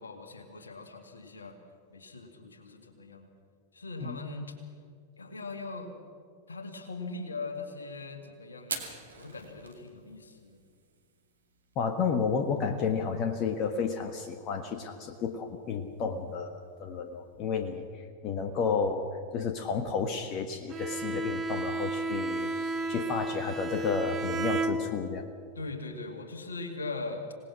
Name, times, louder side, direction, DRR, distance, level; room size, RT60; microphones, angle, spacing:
voice 1, 0.0-1.6 1.9-3.3 3.7-4.5 5.2-5.9 6.5-8.8 9.2-10.6 25.6-27.3, left 3 dB, 75° left, 6 dB, 2.3 m, -40 dB
Fire, 8.6-17.8, right 5 dB, 70° right, 2.5 m, -48 dB
voice 2, 11.8-17.9 18.2-22.5 22.9-25.3, left 5 dB, 35° left, 6 dB, 1.4 m, -31 dB
Bowed string instrument, 20.7-25.3, right 2 dB, 25° right, 1.5 m, -33 dB
26.0 x 19.0 x 6.1 m, 2.1 s
figure-of-eight pair, 90°, 0 cm